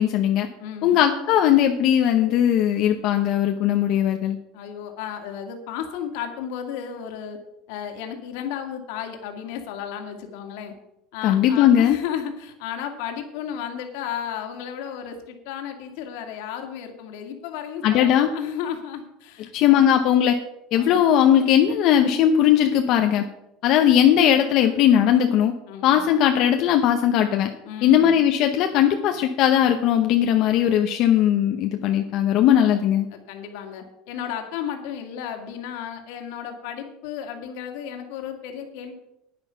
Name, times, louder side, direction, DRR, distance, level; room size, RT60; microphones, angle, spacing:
voice 1, 0.0-0.5 0.8-4.4 11.2-12.0 17.8-18.3 19.5-20.4 20.7-23.2 23.6-25.5 25.8-27.5 27.8-33.1, left 10 dB, 50° left, 5 dB, 0.8 m, -18 dB
voice 2, 0.6-1.0 4.5-7.4 7.7-10.7 11.1-20.1 20.7-21.0 25.7-26.1 27.6-28.3 33.1-38.9, left 8 dB, 70° left, 4 dB, 2.1 m, -34 dB
10.0 x 9.7 x 5.7 m, 0.86 s
cardioid pair, 150°, 0 cm